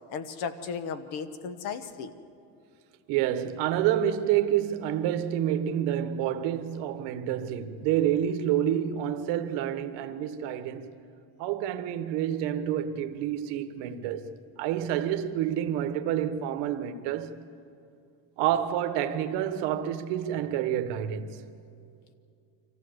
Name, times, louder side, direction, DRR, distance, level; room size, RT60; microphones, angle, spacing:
voice 1, 0.1-2.1, left 6 dB, 65° left, 1.3 m, -35 dB
voice 2, 3.1-11.0 11.4-14.3 14.6-17.4 18.4-21.4, right 10 dB, 75° right, 1.2 m, -28 dB
25.0 x 15.5 x 7.9 m
cardioid pair, 175°, 41 cm